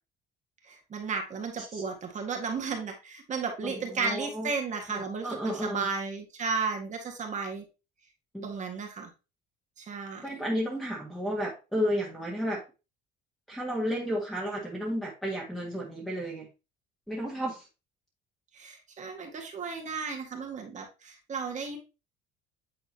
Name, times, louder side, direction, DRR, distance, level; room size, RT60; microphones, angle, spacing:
voice 1, 0.6-7.6 8.4-9.1 9.8-10.4 18.5-21.8, right 5 dB, 40° right, 2 dB, 1.7 m, -34 dB
voice 2, 3.6-4.5 4.9-5.9 8.3-8.6 10.2-12.6 13.5-16.5 17.1-17.7, equal, ahead, -5 dB, 1.7 m, -32 dB
8.9 x 3.8 x 2.8 m, 0.29 s
cardioid pair, 115°, 19 cm